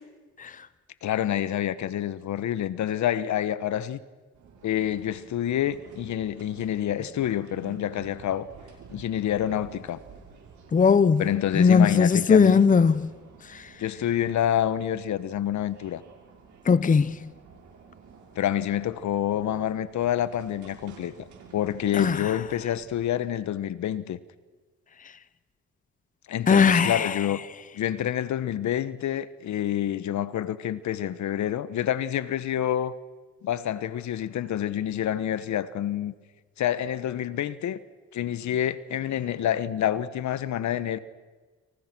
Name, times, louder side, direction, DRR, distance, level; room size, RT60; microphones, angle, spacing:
voice 1, 1.0-4.0 4.6-8.5 8.9-10.0 11.2-12.6 13.8-16.0 18.4-21.3 21.5-24.2 26.3-27.4 27.7-32.9 33.4-36.1 36.6-37.8 38.1-41.0, left 11 dB, 70° left, 1.3 m, -27 dB
sound 1, 4.3-23.1, right 5 dB, 70° right, 6.9 m, -51 dB
voice 2, 10.7-11.2 11.6-13.1 16.7-17.2 22.0-22.3 26.5-27.1, left 5 dB, 25° left, 0.9 m, -19 dB
30.0 x 27.0 x 6.2 m
cardioid pair, 90°, 30 cm